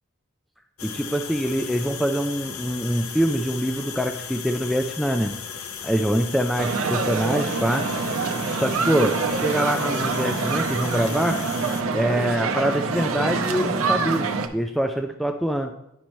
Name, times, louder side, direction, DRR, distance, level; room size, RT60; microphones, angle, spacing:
sound 1, 0.8-11.8, left 7 dB, 85° left, 0.7 m, -36 dB
voice 1, 0.8-5.3 5.8-7.9 8.6-11.4 11.9-15.7, equal, ahead, 5 dB, 0.3 m, -24 dB
Public Place Children Bells, 6.6-14.5, right 4 dB, 70° right, 0.7 m, -25 dB
9.9 x 5.3 x 3.0 m, 0.82 s
head